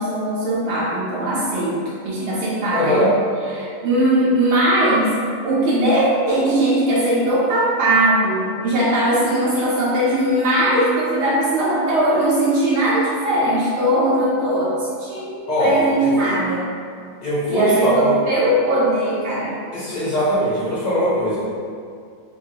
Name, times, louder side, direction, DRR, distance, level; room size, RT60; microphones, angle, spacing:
voice 1, 0.0-3.0 3.5-5.1 5.4-16.7 17.5-19.6, right 1 dB, 65° right, -8 dB, 0.7 m, -19 dB
voice 2, 2.7-3.1 15.5-16.1 17.2-18.1 19.7-21.4, equal, 35° left, -9 dB, 0.8 m, -20 dB
2.9 x 2.5 x 2.8 m, 2.2 s
omnidirectional pair, 1.6 m